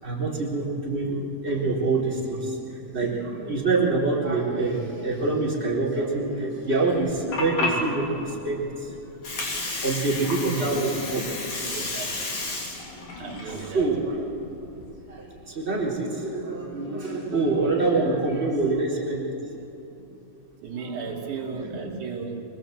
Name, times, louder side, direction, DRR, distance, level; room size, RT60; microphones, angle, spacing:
voice 1, 0.0-8.9 9.3-11.5 13.2-14.6 15.0-19.3 20.0-20.1 21.0-21.2 21.6-22.0, right 3 dB, 15° right, -4 dB, 3.6 m, -26 dB
Water, 7.0-14.9, left 2 dB, 50° left, 4.3 m, -32 dB
voice 2, 11.6-12.2 13.1-13.9 17.9-18.2 18.6-18.7 20.6-22.4, right 5 dB, 55° right, -1 dB, 3.7 m, -35 dB
24.5 x 21.0 x 7.9 m, 2.9 s
omnidirectional pair, 4.4 m